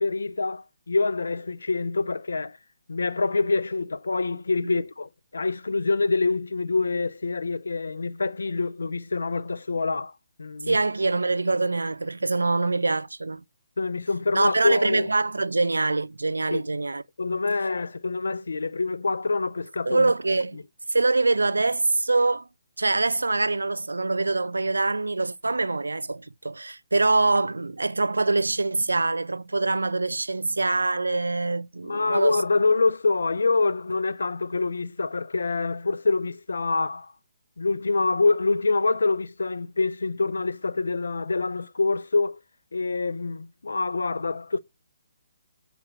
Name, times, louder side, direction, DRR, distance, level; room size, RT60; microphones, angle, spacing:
voice 1, 0.0-2.6 2.9-10.1 10.4-10.8 13.8-15.1 16.5-16.6 17.2-20.1 31.8-37.1 37.6-42.4 42.7-44.6, left 3 dB, 75° left, 0.7 m, -26 dB
voice 2, 10.7-13.4 14.3-17.0 19.9-20.6 20.9-22.5 22.8-32.4, right 3 dB, 85° right, 0.5 m, -24 dB
8.1 x 4.5 x 7.2 m
figure-of-eight pair, 145°, 0 cm